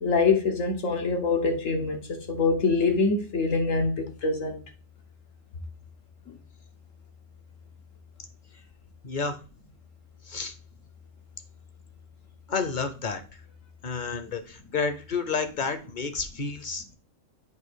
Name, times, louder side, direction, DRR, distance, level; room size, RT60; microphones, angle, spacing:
voice 1, 0.0-4.6 6.3-6.4, left 4 dB, 90° left, 1.6 m, -25 dB
voice 2, 9.0-9.4 10.3-10.5 12.5-13.2 13.8-16.9, left 5 dB, 45° left, 0.8 m, -30 dB
8.2 x 2.8 x 6.2 m
omnidirectional pair, 1.3 m